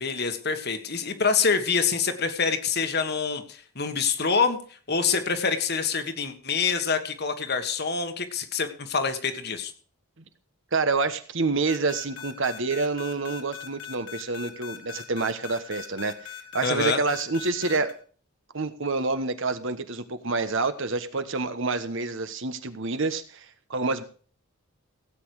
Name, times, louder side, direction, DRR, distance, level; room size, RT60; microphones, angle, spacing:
voice 1, 0.0-4.6 4.9-9.7 16.6-17.0, left 5 dB, 45° left, 8 dB, 1.6 m, -26 dB
voice 2, 10.7-17.9 18.5-24.0, right 3 dB, 60° right, 10 dB, 1.3 m, -28 dB
sound 1, 11.7-17.9, left 10 dB, 80° left, 3.3 m, -40 dB
17.0 x 8.7 x 4.8 m, 0.42 s
head